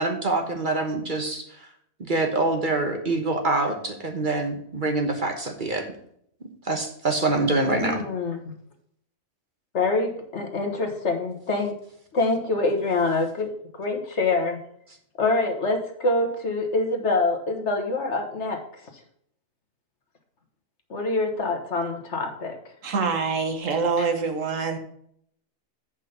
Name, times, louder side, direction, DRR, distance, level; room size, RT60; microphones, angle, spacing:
voice 1, 0.0-1.5 2.0-5.8 6.6-8.1, right 2 dB, 40° right, 4 dB, 1.2 m, -25 dB
voice 2, 7.7-8.4 9.7-11.7 12.1-13.5 13.8-14.6 15.2-18.6 20.9-22.6 24.0-24.1, left 3 dB, 55° left, 4 dB, 1.6 m, -25 dB
voice 3, 22.8-24.8, right 5 dB, 70° right, 6 dB, 1.5 m, -25 dB
8.3 x 5.7 x 5.1 m, 0.68 s
omnidirectional pair, 1.4 m